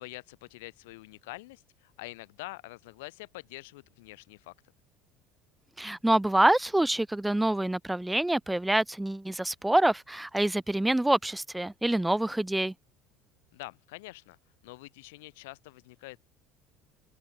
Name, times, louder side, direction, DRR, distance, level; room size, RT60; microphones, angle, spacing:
voice 1, 0.0-4.5 13.5-14.4 14.6-16.2, left 22 dB, 90° left, 5.0 m, -45 dB
voice 2, 5.8-12.7, right 1 dB, 5° right, 0.5 m, -26 dB
supercardioid pair, 100°, 0 cm